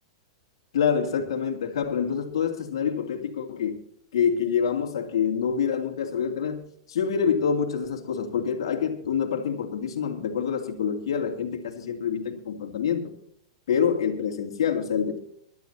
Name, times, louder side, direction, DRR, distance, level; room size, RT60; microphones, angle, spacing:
voice 1, 0.7-3.8 4.1-13.1 13.7-15.2, left 7 dB, 75° left, 2.6 m, -26 dB
22.0 x 12.0 x 2.9 m
hypercardioid pair, 110°, 3 cm